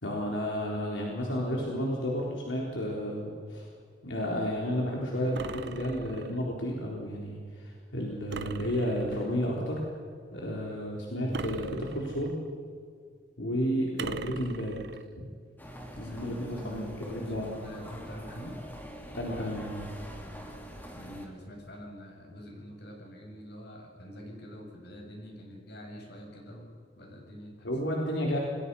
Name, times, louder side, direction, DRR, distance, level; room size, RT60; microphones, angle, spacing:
voice 1, 0.0-3.7 4.0-9.8 10.3-12.4 13.4-14.8 15.2-15.3 16.0-17.6 19.1-19.9 27.6-28.4, equal, 85° left, -2 dB, 4.0 m, -32 dB
sound 1, 5.4-6.4 8.3-9.4 11.3-12.5 14.0-15.1, right 4 dB, 65° right, 0.8 m, -40 dB
sound 2, 15.6-21.3, equal, 10° left, 3.3 m, -44 dB
voice 2, 15.9-18.6 20.9-26.7 27.0-27.8, equal, 60° left, 0 dB, 7.2 m, -45 dB
29.0 x 21.0 x 5.6 m, 2.2 s
head